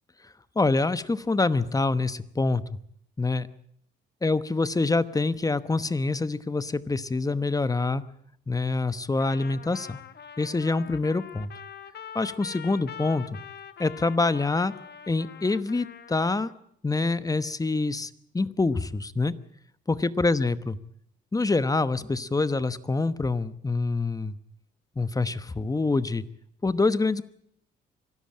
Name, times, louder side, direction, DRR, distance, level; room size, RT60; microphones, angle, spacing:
voice 1, 0.2-2.6 3.2-3.5 4.2-8.0 8.5-10.0 10.4-11.5 12.1-13.4 13.8-14.7 15.1-16.5 16.8-19.3 19.9-20.8 21.3-24.4 25.0-26.2 26.6-27.2, left 3 dB, 20° left, 14 dB, 1.1 m, -26 dB
Trumpet, 9.2-16.5, left 8 dB, 55° left, 1.4 m, -44 dB
24.5 x 13.5 x 8.8 m, 0.70 s
cardioid pair, 90°, 20 cm